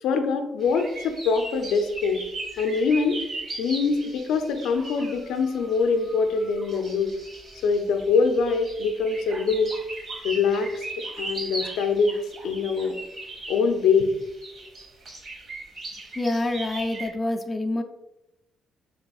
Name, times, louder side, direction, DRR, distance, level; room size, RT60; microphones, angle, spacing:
voice 1, 0.0-2.2 2.6-3.2 3.6-7.1 7.6-9.7 10.2-12.2 12.4-13.0 13.5-14.1, left 5 dB, 85° left, 6 dB, 0.5 m, -24 dB
sound 1, 0.6-17.1, right 2 dB, 50° right, 1.3 m, -39 dB
voice 2, 16.2-17.8, left 2 dB, 25° left, 4 dB, 0.4 m, -26 dB
6.5 x 3.3 x 2.3 m, 0.92 s
cardioid pair, 90°, 0 cm